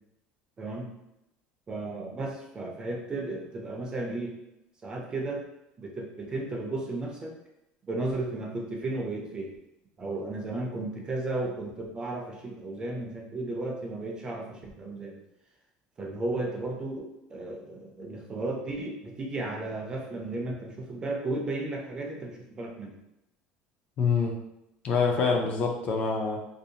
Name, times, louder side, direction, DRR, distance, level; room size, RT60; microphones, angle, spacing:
voice 1, 0.6-0.9 1.7-4.4 4.8-5.4 5.8-7.4 7.9-9.5 10.0-15.2 16.0-22.9, right 2 dB, 20° right, 0 dB, 0.5 m, -34 dB
voice 2, 24.0-24.4 24.8-26.4, left 5 dB, 40° left, 1 dB, 0.4 m, -25 dB
2.6 x 2.0 x 2.7 m, 0.87 s
cardioid pair, 145°, 4 cm